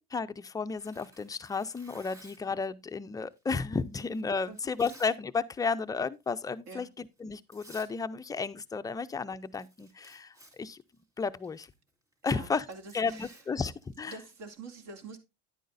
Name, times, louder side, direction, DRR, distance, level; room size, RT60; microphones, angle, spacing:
voice 1, 0.1-10.8 11.2-11.7 12.2-12.6 12.9-14.1, left 4 dB, 10° left, 0.4 m, -33 dB
Tearing, 0.8-2.5 3.3-5.2 5.5-5.8 6.2-6.5 7.2-7.3 7.5-7.9 8.2-9.1 9.3-14.5, right 1 dB, 10° right, 3.5 m, -56 dB
voice 2, 4.5-4.9 6.7-6.9 12.2-13.5 14.1-15.2, right 4 dB, 55° right, 2.5 m, -46 dB
10.5 x 9.1 x 2.6 m
supercardioid pair, 120°, 31 cm